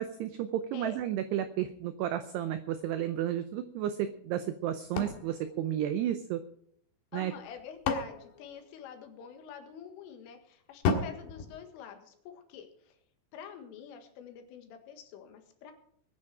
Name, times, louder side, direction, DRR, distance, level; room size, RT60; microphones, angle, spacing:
voice 1, 0.0-6.4 7.1-7.3, right 11 dB, 90° right, 10 dB, 2.3 m, -32 dB
sound 1, 5.0-6.5 7.4-9.3 10.8-12.4, left 4 dB, 65° left, 3.5 m, -35 dB
voice 2, 7.1-13.0 13.3-15.7, left 7 dB, 85° left, 5 dB, 4.2 m, -46 dB
21.0 x 9.8 x 4.9 m, 0.66 s
omnidirectional pair, 5.7 m